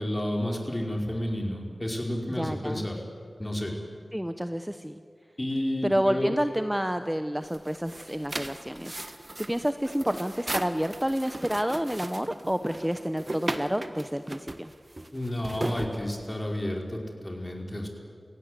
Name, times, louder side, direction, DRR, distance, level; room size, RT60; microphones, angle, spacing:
voice 1, 0.0-3.0 3.4-3.7 5.4-6.4 15.1-17.9, left 1 dB, 25° left, 1 dB, 5.1 m, -31 dB
voice 2, 2.4-2.9 4.1-4.9 5.8-14.7, equal, 10° right, 9 dB, 0.9 m, -29 dB
sound 1, 7.4-16.6, right 1 dB, 35° right, 1.5 m, -37 dB
29.5 x 16.5 x 8.3 m, 2.2 s
wide cardioid pair, 55°, 0 cm